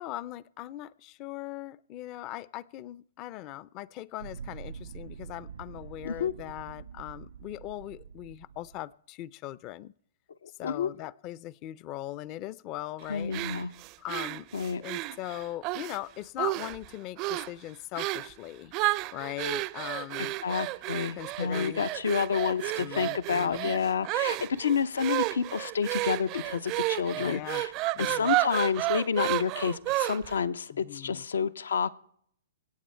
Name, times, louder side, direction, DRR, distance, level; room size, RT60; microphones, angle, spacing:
voice 1, 0.0-9.9 10.6-13.3 14.0-14.5 14.8-18.7 19.1-20.4 21.1-21.9 22.8-23.7 27.2-27.6 27.9-28.3 30.7-31.2, left 14 dB, 35° left, 22 dB, 0.4 m, -40 dB
sound 1, 4.2-8.8, right 6 dB, 90° right, 1.1 m, -45 dB
voice 2, 10.4-10.9 13.1-13.7 14.5-14.8 20.2-27.7 28.0-31.9, left 6 dB, 80° left, 16 dB, 0.6 m, -29 dB
sound 2, 13.3-16.0 16.4-16.9 17.2-17.5 18.0-18.3 18.7-30.4, right 19 dB, 40° right, 0.4 m, -32 dB
24.5 x 8.7 x 4.4 m, 0.66 s
hypercardioid pair, 125°, 0 cm